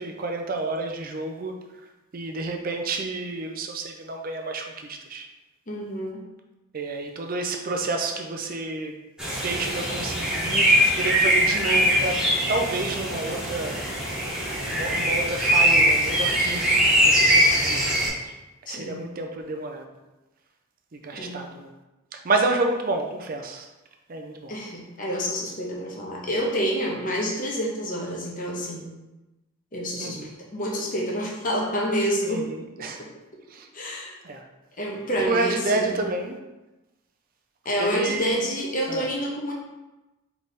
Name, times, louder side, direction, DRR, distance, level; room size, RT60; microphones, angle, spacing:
voice 1, 0.0-1.6 2.1-5.2 6.7-9.0 9.4-12.2 12.5-13.8 14.7-18.0 18.2-18.3 18.7-19.9 21.0-21.7 22.1-23.7 24.1-24.5 30.0-30.3 32.2-33.0 33.5-33.7 34.2-34.4 35.2-36.4 37.8-38.4 38.9-39.0, right 3 dB, 40° right, 3 dB, 0.5 m, -29 dB
voice 2, 5.7-6.2 18.7-19.0 21.1-21.4 24.5-28.9 29.7-30.2 30.5-32.4 32.8-32.9 33.7-34.2 34.8-36.0 37.6-39.5, equal, 40° left, -3 dB, 0.8 m, -28 dB
sound 1, 9.2-18.1, equal, 5° right, 1.1 m, -22 dB
3.4 x 3.3 x 4.1 m, 1.0 s
head